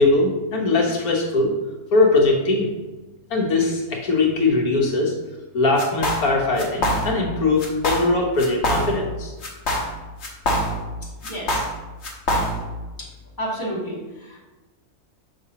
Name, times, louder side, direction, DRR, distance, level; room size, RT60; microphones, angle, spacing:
voice 1, 0.0-1.5 1.9-2.8 3.3-5.1 5.5-9.3, left 3 dB, 90° left, -1 dB, 1.5 m, -20 dB
sound 1, 5.8-6.3 6.6-7.3 7.6-8.1 8.4-9.1 9.4-10.9 11.2-12.7, equal, 50° left, 1.3 m, -24 dB
voice 2, 11.2-11.6 13.0-13.1 13.4-14.4, equal, 15° left, -6 dB, 2.0 m, -30 dB
6.1 x 5.8 x 2.8 m, 1.2 s
omnidirectional pair, 1.5 m